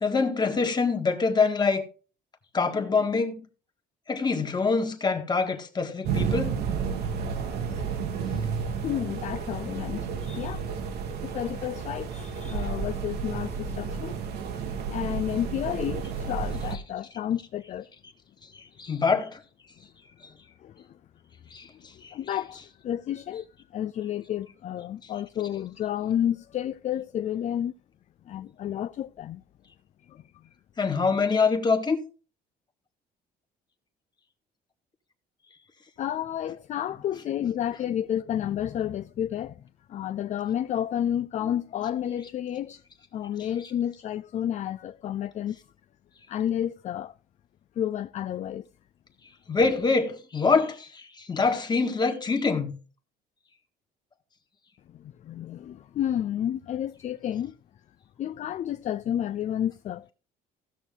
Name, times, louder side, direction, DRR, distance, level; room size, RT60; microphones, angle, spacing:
voice 1, 0.0-1.9 2.5-3.4 4.1-6.5 18.8-19.4 21.5-21.7 22.0-22.1 30.8-32.0 49.5-52.7, left 4 dB, 25° left, 1.7 m, -25 dB
sound 1, 6.0-16.8, right 6 dB, 70° right, 1.5 m, -31 dB
voice 2, 8.8-10.7 11.2-14.2 14.9-17.9 20.6-20.8 21.9-23.5 23.7-27.7 28.3-29.4 30.1-30.2 36.0-39.6 39.9-42.8 43.1-45.6 46.3-47.1 47.8-48.6 54.9-57.5 58.2-60.1, left 10 dB, 45° left, 0.4 m, -31 dB
15.5 x 6.3 x 3.8 m
cardioid pair, 110°, 17 cm